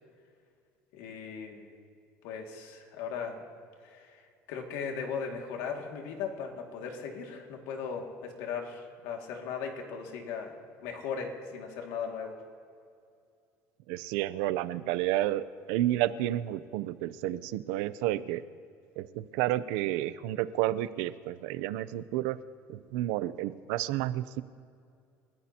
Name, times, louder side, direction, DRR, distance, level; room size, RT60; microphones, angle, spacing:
voice 1, 0.9-1.7 2.2-3.4 3.8-4.2 4.5-10.5 10.8-12.4, left 6 dB, 80° left, 2 dB, 2.2 m, -37 dB
voice 2, 13.9-18.4 19.0-22.4 22.7-24.4, right 14 dB, 90° right, 15 dB, 0.6 m, -31 dB
29.5 x 15.0 x 2.9 m, 2.4 s
cardioid pair, 155°, 6 cm